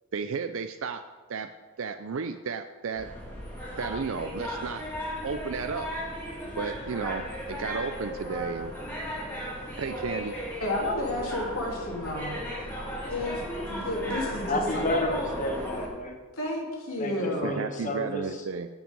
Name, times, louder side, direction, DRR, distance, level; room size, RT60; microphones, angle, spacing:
voice 1, 0.1-1.0 1.3-1.5 1.8-3.1 3.8-4.9 5.2-5.9 6.6-8.7 9.8-10.3 17.4-18.7, right 5 dB, 60° right, 8 dB, 0.4 m, -33 dB
sound 1, 3.0-15.9, equal, 10° left, 2.5 m, -36 dB
voice 2, 10.6-12.3 13.1-14.8 16.4-17.6, left 1 dB, 75° left, -2 dB, 3.1 m, -31 dB
voice 3, 14.5-16.2 17.0-18.3, left 1 dB, 35° left, 4 dB, 1.3 m, -31 dB
17.5 x 6.1 x 5.4 m, 1.5 s
head